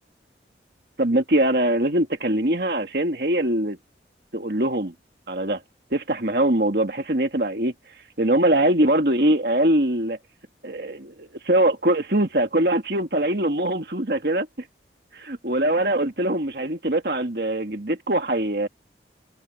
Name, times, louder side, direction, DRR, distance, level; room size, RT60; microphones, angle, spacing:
voice 1, 1.0-3.8 4.3-4.9 5.3-5.6 5.9-7.7 8.2-10.2 10.6-14.5 15.1-18.7, right 1 dB, 60° right, 2.1 m, -22 dB
head